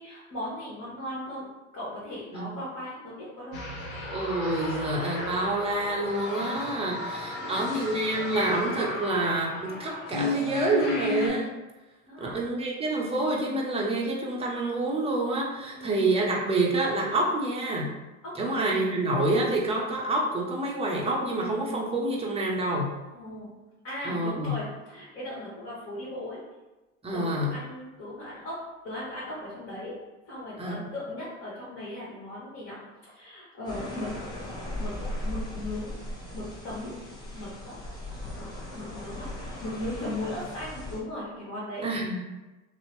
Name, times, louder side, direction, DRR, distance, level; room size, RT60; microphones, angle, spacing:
voice 1, 0.0-3.7 7.4-7.6 12.1-12.4 15.7-16.0 18.2-18.6 23.1-23.5 23.8-26.4 27.1-28.6 28.8-29.9 30.2-34.1 34.8-35.0 35.2-35.9 36.3-37.0 37.3-37.8 38.3-41.8, left 1 dB, 40° left, -8 dB, 1.3 m, -37 dB
sound 1, 3.5-11.3, left 2 dB, 60° left, 0.9 m, -34 dB
voice 2, 4.1-11.6 12.2-17.9 18.4-22.9 24.0-24.6 27.0-27.5 30.6-30.8 41.8-42.2, right 2 dB, 15° right, -3 dB, 0.7 m, -27 dB
sound 2, 33.6-41.0, left 1 dB, 10° left, 0.9 m, -38 dB
2.7 x 2.0 x 3.0 m, 1.1 s
hypercardioid pair, 80°, 38 cm